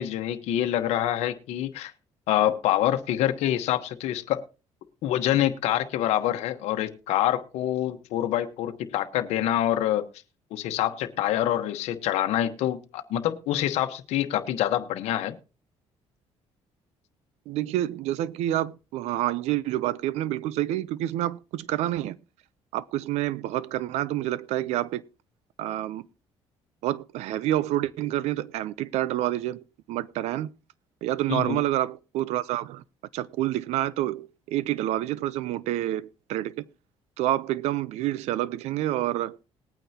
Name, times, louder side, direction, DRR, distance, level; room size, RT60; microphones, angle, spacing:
voice 1, 0.0-1.9 2.3-4.4 5.0-10.0 10.5-15.3 31.3-31.6, left 12 dB, 85° left, 1.1 m, -26 dB
voice 2, 17.5-22.2 22.7-25.0 25.6-26.1 26.8-29.6 29.9-30.5 31.0-32.8 33.1-36.7 37.2-39.4, right 14 dB, 85° right, 0.5 m, -28 dB
20.0 x 9.1 x 2.8 m
cardioid pair, 110°, 11 cm